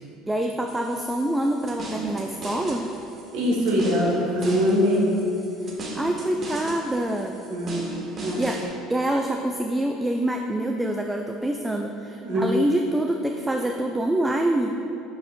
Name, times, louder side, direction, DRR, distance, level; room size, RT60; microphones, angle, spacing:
voice 1, 0.3-2.9 5.9-7.4 8.4-8.6 8.9-14.8, right 1 dB, 10° right, 3 dB, 0.4 m, -26 dB
sound 1, 0.7-8.7, right 1 dB, 40° right, 1.1 m, -37 dB
voice 2, 3.3-5.1 7.4-7.8 8.2-8.4 12.2-12.5, equal, 65° right, -3 dB, 1.4 m, -22 dB
7.4 x 6.1 x 2.4 m, 2.9 s
figure-of-eight pair, 65°, 0 cm